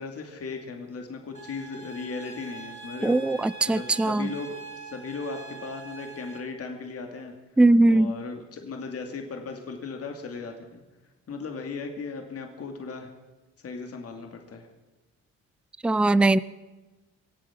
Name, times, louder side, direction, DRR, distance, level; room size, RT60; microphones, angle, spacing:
voice 1, 0.0-7.3 7.8-10.8 11.3-13.1 13.6-14.7, left 4 dB, 50° left, 4 dB, 2.5 m, -37 dB
sound 1, 1.3-6.4, right 4 dB, 20° left, 4.6 m, -43 dB
voice 2, 3.0-4.3 7.6-8.1 15.8-16.4, right 2 dB, 5° right, 17 dB, 0.4 m, -20 dB
24.0 x 8.6 x 6.0 m, 1.2 s
cardioid pair, 90°, 30 cm